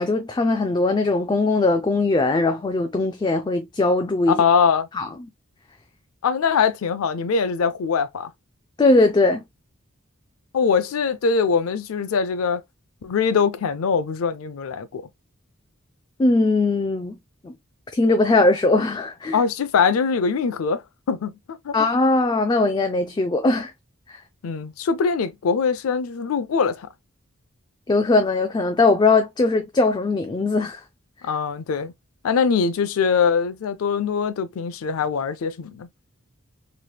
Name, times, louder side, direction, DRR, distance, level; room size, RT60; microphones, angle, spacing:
voice 1, 0.0-4.4 4.9-5.1 8.8-9.4 16.2-17.2 17.4-17.5 17.9-19.4 21.7-23.7 24.1-24.2 27.9-30.8, left 2 dB, 20° left, 0.3 m, -20 dB
voice 2, 4.3-4.9 6.2-8.3 10.5-12.6 13.0-15.0 19.3-21.3 21.6-21.8 24.4-26.9 31.2-31.9 32.2-35.9, left 6 dB, 90° left, 0.4 m, -22 dB
3.3 x 3.0 x 2.2 m
head